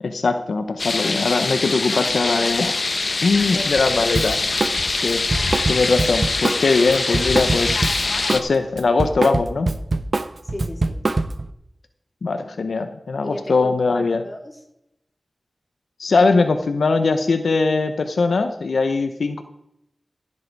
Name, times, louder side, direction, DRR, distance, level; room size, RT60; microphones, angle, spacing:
voice 1, 0.0-2.8 3.2-4.4 4.9-5.2 5.7-7.8 8.3-9.7 12.2-14.2 16.0-19.4, left 3 dB, 90° left, 8 dB, 0.8 m, -21 dB
sound 1, 0.8-8.4, left 3 dB, 60° left, 0.9 m, -23 dB
voice 2, 3.5-4.0 4.2-4.5 10.4-11.0 13.2-14.6, left 1 dB, 25° left, 2 dB, 3.1 m, -36 dB
Drum kit, 4.1-4.8 5.1-8.5 8.8-11.5, right 2 dB, 55° right, 0.7 m, -24 dB
15.0 x 7.6 x 4.7 m, 0.79 s
wide cardioid pair, 55°, 0 cm